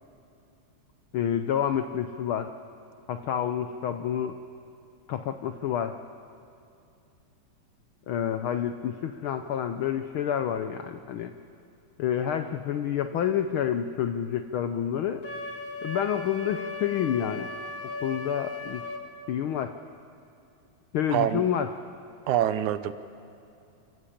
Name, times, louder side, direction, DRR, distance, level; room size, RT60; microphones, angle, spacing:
voice 1, 1.1-2.5 3.1-4.4 5.1-6.0 8.1-11.3 12.0-15.2 15.8-17.5 18.0-18.8 19.3-19.7 20.9-21.7, left 9 dB, 90° left, 8 dB, 1.1 m, -28 dB
Wind instrument woodwind instrument, 15.2-19.0, left 3 dB, 45° left, 2.3 m, -37 dB
voice 2, 21.1-21.4 22.3-22.9, right 11 dB, 85° right, 12 dB, 2.3 m, -25 dB
27.5 x 15.0 x 8.7 m, 2.7 s
omnidirectional pair, 3.3 m